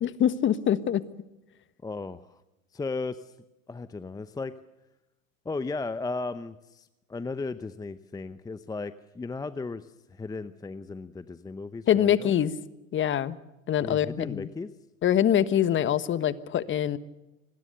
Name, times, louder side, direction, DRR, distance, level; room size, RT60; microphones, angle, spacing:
voice 1, 0.0-1.0 11.9-12.5 12.9-13.4 13.7-14.5 15.0-17.0, left 10 dB, 30° left, 15 dB, 1.4 m, -24 dB
voice 2, 1.8-2.4 2.7-3.3 3.7-4.5 5.4-12.3 13.8-14.7, left 3 dB, 10° left, 13 dB, 0.8 m, -35 dB
26.5 x 21.0 x 6.7 m, 0.97 s
hypercardioid pair, 100°, 41 cm